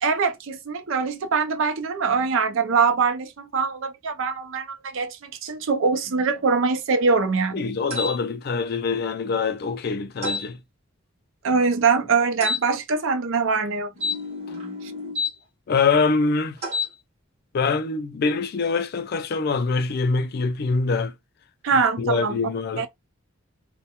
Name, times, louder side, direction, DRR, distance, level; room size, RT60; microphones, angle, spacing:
voice 1, 0.0-7.6 11.4-13.9 14.8-14.9 21.6-22.4 22.8-22.9, right 5 dB, 65° right, 0.5 m, -23 dB
voice 2, 7.5-10.6 15.7-16.6 17.5-21.1 22.0-22.9, left 4 dB, 45° left, 0.3 m, -24 dB
sound 1, 7.9-8.2 10.2-10.5 12.4-12.6 14.0-15.3 16.6-16.9, left 3 dB, 30° right, 0.9 m, -28 dB
2.2 x 2.1 x 2.8 m
head